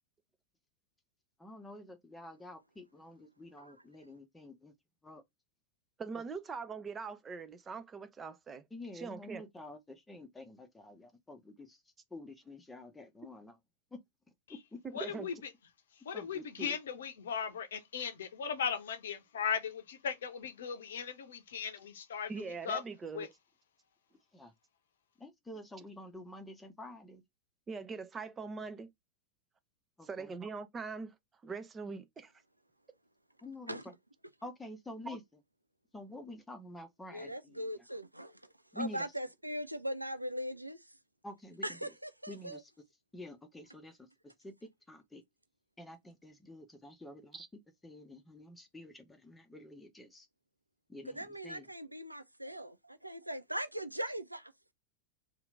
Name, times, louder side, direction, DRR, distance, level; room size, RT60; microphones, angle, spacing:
voice 1, 1.4-4.7 5.0-5.2 8.7-11.8 12.1-13.6 13.9-14.0 14.5-14.8 16.1-16.8 24.3-24.5 25.2-27.2 30.0-30.3 33.4-33.8 34.4-35.2 35.9-37.6 38.7-39.1 41.2-41.6 42.3-42.6 43.1-44.0 44.2-45.2 45.8-47.4 47.8-50.3 50.9-51.7, left 2 dB, 10° left, 0.8 m, -48 dB
voice 2, 6.0-8.6 8.9-9.4 14.8-15.4 22.3-23.3 25.8-25.9 27.7-28.9 30.0-31.1 31.4-32.3 35.1-35.2 47.3-47.5, right 5 dB, 20° right, 0.4 m, -42 dB
voice 3, 14.9-15.3 16.1-22.3 22.6-22.8 23.1-23.3, left 7 dB, 65° left, 0.7 m, -37 dB
voice 4, 37.1-40.9 41.6-42.6 51.0-54.5, equal, 85° right, 0.3 m, -40 dB
2.8 x 2.5 x 3.3 m
figure-of-eight pair, 90°, 0 cm